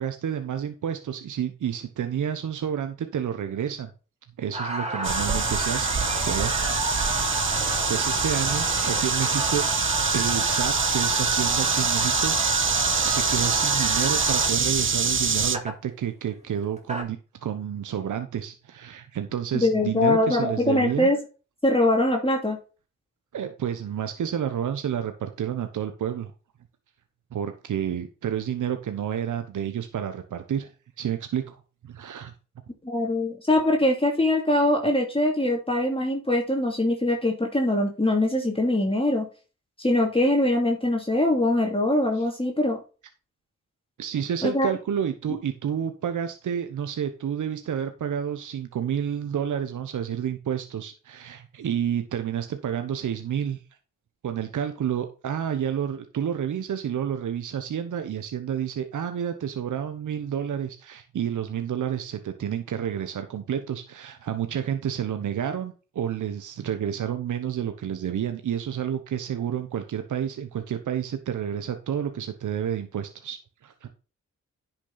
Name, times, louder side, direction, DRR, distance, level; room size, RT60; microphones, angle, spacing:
voice 1, 0.0-3.9 4.4-5.9 6.3-9.7 10.1-12.4 13.0-21.1 23.3-26.3 27.3-32.3 42.2-42.3 44.0-53.6 54.2-73.9, right 9 dB, 75° right, 8 dB, 1.1 m, -30 dB
sound 1, 4.5-14.5 15.5-15.7 16.6-17.0, equal, 20° right, 3.0 m, -30 dB
sound 2, 5.0-15.6, right 5 dB, 40° right, 1.0 m, -25 dB
voice 2, 19.5-21.2 21.6-22.6 32.8-39.3 39.8-42.8 44.4-44.7, left 1 dB, 15° left, 1 dB, 2.8 m, -22 dB
10.5 x 6.0 x 4.0 m, 0.34 s
cardioid pair, 50°, 31 cm